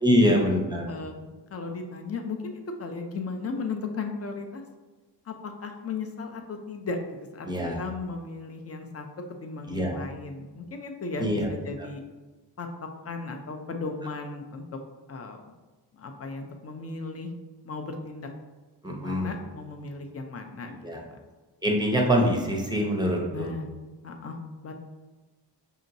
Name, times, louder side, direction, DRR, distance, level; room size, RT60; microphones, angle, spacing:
voice 1, 0.0-0.8 7.4-7.8 9.7-10.1 11.2-11.5 11.8-11.9 18.8-19.3 20.8-21.0 21.6-23.5, equal, 10° right, -1 dB, 0.6 m, -24 dB
voice 2, 1.5-2.4 2.8-4.6 5.3-7.5 7.8-9.1 9.4-12.0 12.6-12.7 13.0-14.6 15.1-15.4 16.0-17.3 17.6-18.3 18.8-20.7 21.0-21.1 23.3-23.6 24.0-24.4 24.6-24.7, left 4 dB, 35° left, 4 dB, 0.5 m, -36 dB
5.2 x 2.9 x 2.6 m, 1.3 s
wide cardioid pair, 125°, 42 cm